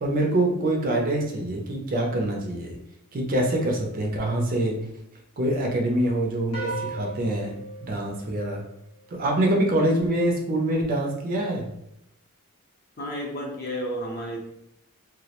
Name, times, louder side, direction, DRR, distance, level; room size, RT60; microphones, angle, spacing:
voice 1, 0.0-2.8 3.1-4.9 5.4-8.7 9.1-11.7, right 1 dB, 40° right, 1 dB, 0.4 m, -25 dB
sound 1, 6.5-9.1, right 2 dB, 75° left, 0.8 m, -37 dB
voice 2, 13.0-14.4, equal, 40° left, -1 dB, 0.5 m, -31 dB
2.2 x 2.0 x 2.8 m, 0.81 s
head